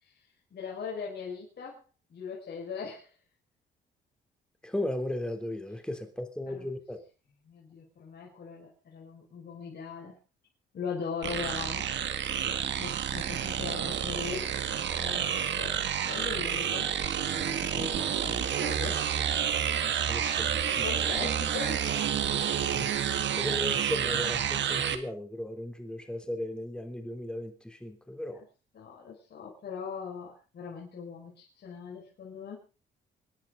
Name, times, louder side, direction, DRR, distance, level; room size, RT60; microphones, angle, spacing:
voice 1, 0.5-1.8 2.1-3.1 6.5-6.7 7.4-10.2 10.7-12.2 12.8-14.5 14.9-19.1 20.8-21.8 28.3-28.4 28.7-32.6, left 6 dB, 55° left, -3 dB, 5.8 m, -40 dB
voice 2, 4.6-7.0 17.7-17.8 19.9-21.1 22.7-22.9 23.3-28.4, left 1 dB, 5° left, 6 dB, 3.5 m, -36 dB
sound 1, 11.2-25.0, right 9 dB, 65° right, 1.8 m, -29 dB
26.5 x 10.5 x 4.0 m, 0.34 s
cardioid pair, 90°, 20 cm